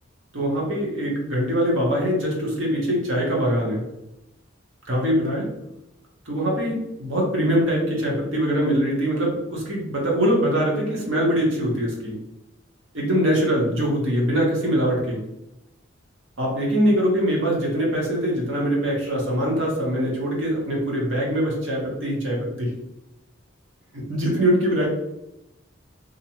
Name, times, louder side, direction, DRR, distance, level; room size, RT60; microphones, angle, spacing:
voice 1, 0.3-3.8 4.9-5.5 6.3-12.1 12.9-15.2 16.4-22.7 23.9-24.9, equal, 70° right, -2 dB, 1.0 m, -23 dB
2.5 x 2.3 x 2.9 m, 0.88 s
head